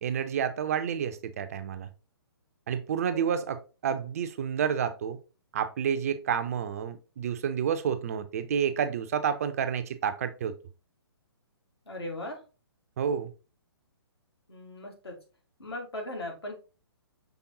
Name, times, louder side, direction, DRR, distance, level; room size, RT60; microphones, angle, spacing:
voice 1, 0.0-1.9 2.7-5.2 5.5-10.6 13.0-13.3, right 8 dB, 35° right, 0.4 m, -29 dB
voice 2, 3.1-3.4 11.8-12.4 14.5-15.2 15.6-16.5, left 1 dB, 70° left, 1.7 m, -38 dB
5.9 x 3.4 x 2.6 m
figure-of-eight pair, 130°, 14 cm